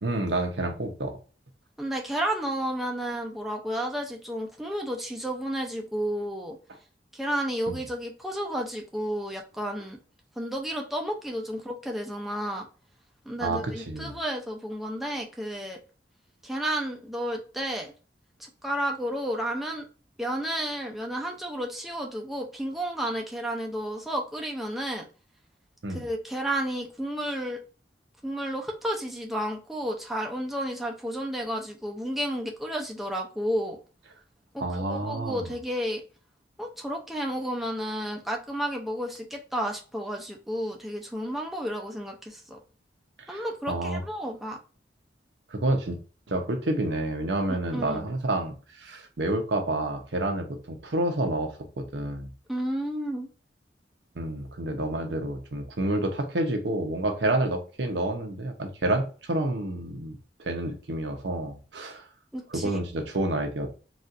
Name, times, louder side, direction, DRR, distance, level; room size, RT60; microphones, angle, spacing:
voice 1, 0.0-1.1 7.7-7.8 13.4-14.1 25.8-26.0 34.6-35.5 43.3-44.0 45.5-46.0 46.3-52.3 54.2-62.0 62.5-63.7, right 1 dB, 70° right, 0.8 m, -29 dB
voice 2, 1.8-6.6 7.1-10.0 10.4-12.7 13.3-15.8 16.4-17.9 18.4-19.9 20.2-25.0 25.9-27.6 28.2-33.8 34.5-36.0 36.6-42.6 43.3-44.6 47.5-48.1 52.5-53.3 62.3-62.8, equal, ahead, 0.5 m, -32 dB
4.1 x 2.4 x 2.5 m
head